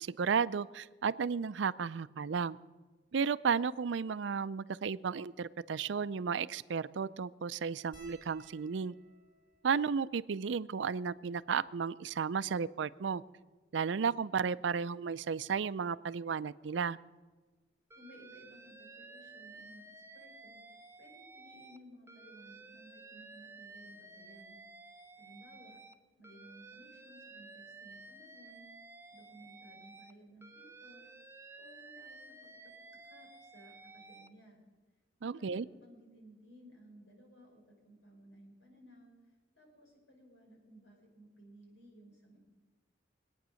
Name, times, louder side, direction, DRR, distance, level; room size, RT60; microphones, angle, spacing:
voice 1, 0.0-2.6 3.1-8.9 9.6-13.2 13.7-17.0 35.2-35.6, right 6 dB, 80° right, 16 dB, 0.4 m, -33 dB
sound 1, 7.9-12.5 13.3-13.4 13.6-13.8 15.0-15.2 16.7-16.8 17.0-17.2, right 2 dB, 45° left, 5.2 m, -64 dB
voice 2, 17.9-20.6 21.0-24.6 25.2-25.8 26.2-28.7 29.1-31.1 31.6-34.6 35.2-39.1 39.5-42.5, equal, 90° left, 1 dB, 5.1 m, -58 dB
Alarm, 17.9-21.8 22.1-25.9 26.2-30.1 30.4-34.3, right 3 dB, 15° right, 0.6 m, -53 dB
23.0 x 9.3 x 6.3 m, 1.3 s
head